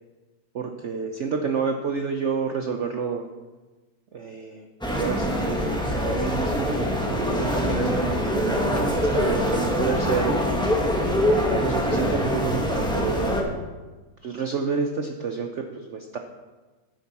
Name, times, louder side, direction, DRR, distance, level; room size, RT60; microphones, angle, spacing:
voice 1, 0.5-3.3 4.1-10.3 11.2-13.4 14.2-16.2, right 5 dB, 75° right, 5 dB, 0.6 m, -29 dB
sound 1, 4.8-13.4, equal, 5° left, 0.9 m, -24 dB
10.5 x 9.2 x 4.2 m, 1.3 s
omnidirectional pair, 2.1 m